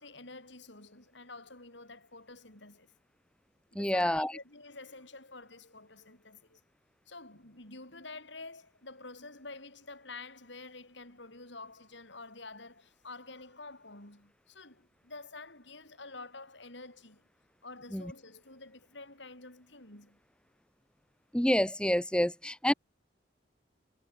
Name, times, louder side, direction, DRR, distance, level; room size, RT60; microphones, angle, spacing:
voice 1, 0.0-2.9 3.7-6.6 7.1-17.2 17.6-20.2, left 3 dB, 70° left, 7.5 m, -49 dB
voice 2, 3.7-4.3 17.9-18.0 21.3-22.7, equal, 5° left, 1.5 m, -28 dB
head